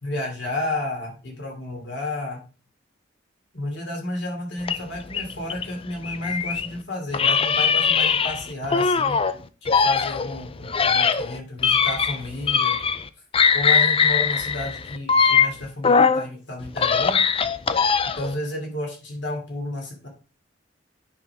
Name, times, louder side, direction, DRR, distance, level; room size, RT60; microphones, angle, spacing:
voice 1, 0.0-2.4 3.5-9.2 9.6-12.8 13.5-17.2 18.0-20.1, left 1 dB, 65° left, 1 dB, 2.8 m, -32 dB
sound 1, 4.6-6.7 7.1-9.3 9.7-13.1 13.3-16.3 16.6-18.3, left 6 dB, 30° left, 0.4 m, -21 dB
9.5 x 5.5 x 3.5 m, 0.35 s
head